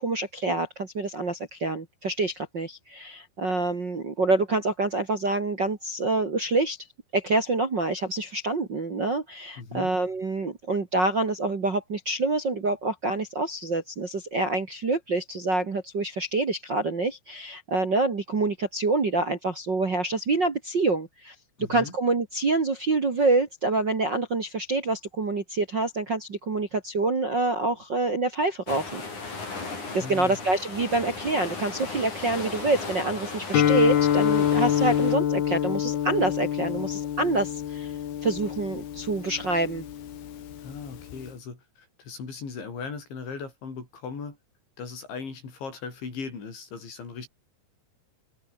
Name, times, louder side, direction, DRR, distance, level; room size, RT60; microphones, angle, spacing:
voice 1, 0.0-6.8 7.1-21.3 21.7-29.0 29.9-37.9 38.2-39.9, right 3 dB, 40° right, 1.8 m, -26 dB
voice 2, 9.6-9.9 21.6-21.9 30.0-30.4 40.6-44.4 44.8-47.3, left 5 dB, 90° left, 9.5 m, -38 dB
sound 1, 28.7-35.2, left 3 dB, 40° left, 8.5 m, -37 dB
Guitar, 33.5-41.3, left 10 dB, 65° left, 4.1 m, -26 dB
omnidirectional pair, 5.1 m